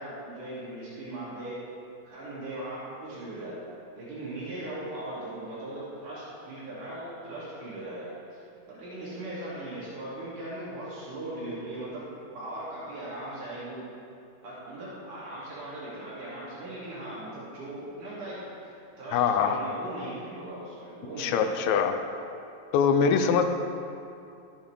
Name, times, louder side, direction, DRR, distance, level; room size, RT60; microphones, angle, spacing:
voice 1, 0.0-1.6 2.0-3.6 4.0-8.4 8.7-12.1 12.3-13.9 14.4-21.7, right 1 dB, 90° right, -9 dB, 4.1 m, -39 dB
voice 2, 19.1-19.6 21.2-21.9 22.7-23.4, left 6 dB, 75° left, 7 dB, 1.9 m, -23 dB
14.0 x 8.6 x 3.4 m, 2.6 s
omnidirectional pair, 3.4 m